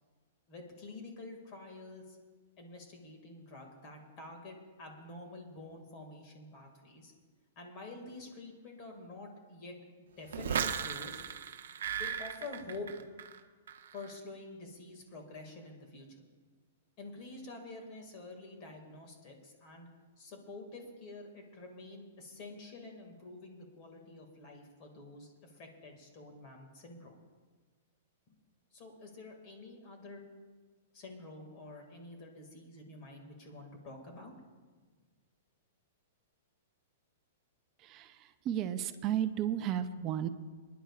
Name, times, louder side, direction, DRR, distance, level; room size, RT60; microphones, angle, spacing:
voice 1, 0.5-2.2 2.6-7.1 7.6-9.8 10.2-11.2 12.0-12.9 13.9-16.2 17.0-19.9 20.2-27.2 28.3-28.4 28.7-30.2 30.9-34.3, left 2 dB, 30° left, 2 dB, 2.0 m, -48 dB
sound 1, 10.3-13.4 13.7-14.1, right 7 dB, 80° right, 0.8 m, -36 dB
voice 2, 37.8-40.3, right 10 dB, 25° right, 10 dB, 0.5 m, -34 dB
27.0 x 10.5 x 2.4 m, 1.4 s
hypercardioid pair, 170°, 0 cm